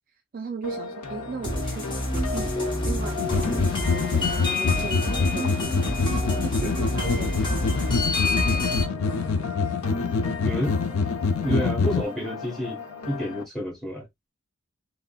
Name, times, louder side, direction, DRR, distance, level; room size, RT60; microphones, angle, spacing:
voice 1, 0.3-5.7 6.3-7.8 8.5-9.0, right 5 dB, 40° right, 0.3 m, -38 dB
sound 1, 0.6-13.4, left 4 dB, 85° left, 0.9 m, -36 dB
sound 2, 1.4-8.8, left 1 dB, 20° left, 0.9 m, -27 dB
sound 3, 3.2-12.0, left 4 dB, 65° left, 0.4 m, -26 dB
voice 2, 10.4-10.8 11.4-12.8 13.1-14.1, equal, ahead, 1.3 m, -29 dB
3.7 x 2.1 x 2.3 m
head